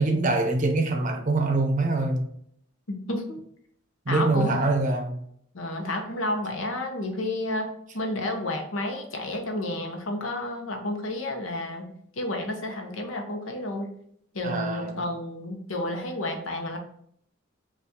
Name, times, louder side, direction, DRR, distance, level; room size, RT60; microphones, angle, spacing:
voice 1, 0.0-2.3 4.1-5.2 14.4-15.0, right 2 dB, 40° right, 0.6 m, -24 dB
voice 2, 2.9-3.4 4.1-4.7 5.5-13.9 14.3-16.8, left 1 dB, 80° left, 0.8 m, -31 dB
5.5 x 2.5 x 2.9 m
head